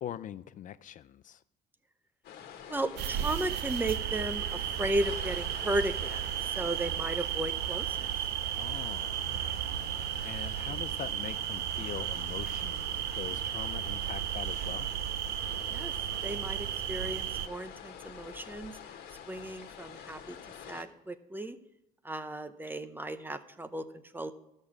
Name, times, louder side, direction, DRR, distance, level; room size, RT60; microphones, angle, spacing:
voice 1, 0.0-1.4 8.5-9.6 10.2-14.9 19.3-19.6, left 11 dB, 50° left, 0.4 m, -43 dB
sound 1, 2.2-20.8, left 8 dB, 70° left, 1.5 m, -47 dB
voice 2, 2.7-6.2 6.5-8.1 15.7-15.9 16.2-18.7 19.3-20.4 20.7-21.6 22.0-24.3, right 1 dB, 10° right, 0.8 m, -35 dB
sound 2, 3.0-17.5, right 11 dB, 75° right, 0.6 m, -34 dB
13.5 x 6.5 x 6.0 m
cardioid pair, 110°, 17 cm